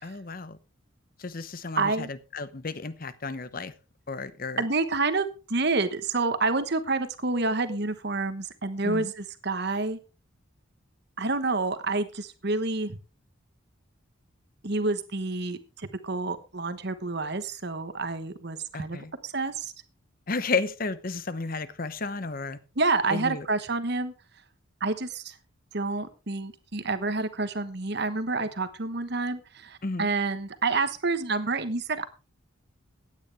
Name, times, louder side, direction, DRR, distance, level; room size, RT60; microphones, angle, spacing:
voice 1, 0.0-0.6 1.2-3.7 4.1-4.6 8.8-9.1 18.7-19.1 20.3-22.6 23.1-23.5 29.8-30.1, left 4 dB, 45° left, 0.9 m, -32 dB
voice 2, 1.8-2.1 4.6-10.0 11.2-13.0 14.6-19.7 22.8-24.1 24.8-25.3 25.7-32.1, right 3 dB, 50° right, 1.2 m, -28 dB
15.5 x 9.7 x 3.4 m
head